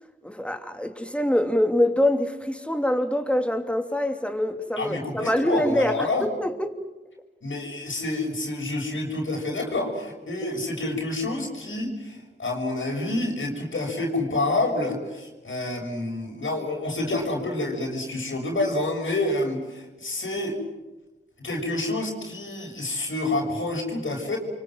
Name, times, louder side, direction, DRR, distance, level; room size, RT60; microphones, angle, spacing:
voice 1, 0.2-6.7, left 1 dB, 5° left, 3.1 m, -25 dB
voice 2, 4.8-6.3 7.4-20.6 21.4-24.4, left 2 dB, 80° left, 6.9 m, -28 dB
29.5 x 24.5 x 7.8 m
cardioid pair, 40°, 20 cm